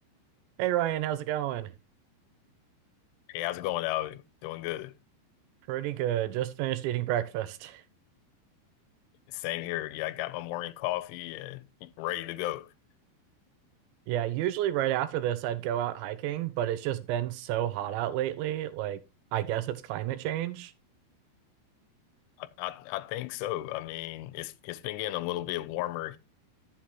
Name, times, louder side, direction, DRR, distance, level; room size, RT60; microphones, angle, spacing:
voice 1, 0.6-1.7 5.7-7.8 14.1-19.0 19.3-20.7, right 13 dB, 80° right, 2.8 m, -30 dB
voice 2, 3.3-4.9 9.3-12.7 22.4-26.2, left 16 dB, 85° left, 3.0 m, -34 dB
11.5 x 7.3 x 2.9 m
omnidirectional pair, 5.4 m